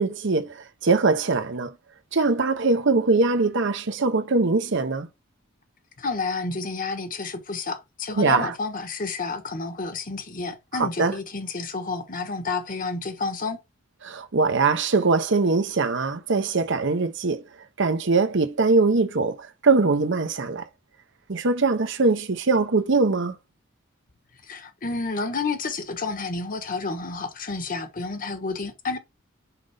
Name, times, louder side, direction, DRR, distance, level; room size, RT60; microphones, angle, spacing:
voice 1, 0.0-1.7 2.1-5.1 8.2-8.5 10.7-11.1 14.0-17.4 17.8-20.6 21.3-23.3, right 3 dB, 60° right, 0.8 m, -22 dB
voice 2, 6.0-13.6 24.4-29.0, left 4 dB, 40° left, 1.2 m, -30 dB
5.9 x 5.3 x 3.4 m
head